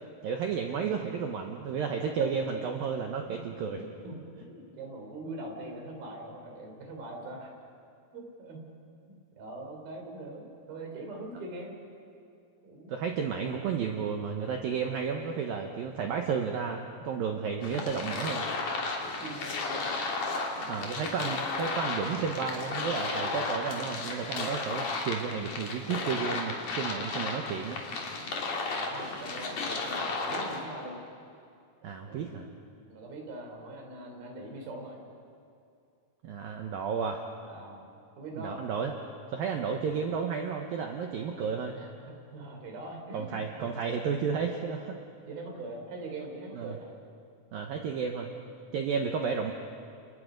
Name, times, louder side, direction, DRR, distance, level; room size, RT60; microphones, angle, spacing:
voice 1, 0.2-3.8 12.9-18.5 20.7-27.8 31.8-32.5 36.2-37.2 38.4-38.9 39.3-41.8 43.1-45.0 46.6-46.7 47.5-48.3 48.7-49.5, right 6 dB, 75° right, 3 dB, 2.1 m, -32 dB
voice 2, 3.3-7.5 8.1-8.7 9.1-11.8 12.6-13.0 19.2-20.0 28.6-31.0 32.0-32.5 32.9-35.0 37.4-38.6 41.7-41.9 42.3-43.7 45.3-46.9, right 2 dB, 50° right, 2 dB, 5.4 m, -42 dB
sound 1, 17.6-30.6, left 3 dB, 45° left, 3.7 m, -34 dB
30.0 x 29.5 x 5.3 m, 2.5 s
omnidirectional pair, 5.8 m